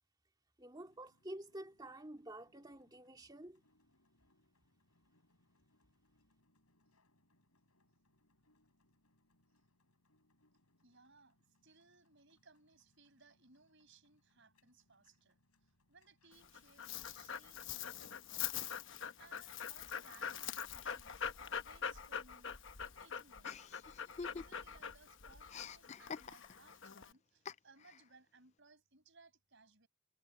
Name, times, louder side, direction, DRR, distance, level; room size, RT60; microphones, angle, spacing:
voice 1, 0.6-3.6, right 1 dB, 20° right, 2.4 m, -50 dB
sound 1, 0.7-17.2, left 1 dB, 85° left, 5.5 m, -77 dB
voice 2, 10.8-18.5 19.2-22.5 22.8-23.7 24.1-29.9, right 4 dB, 55° right, 6.3 m, -65 dB
Dog, 16.3-27.1, left 8 dB, 55° left, 1.0 m, -44 dB
Chuckle chortle, 23.4-24.8 25.1-26.7 27.5-28.0, left 5 dB, 30° left, 0.3 m, -48 dB
head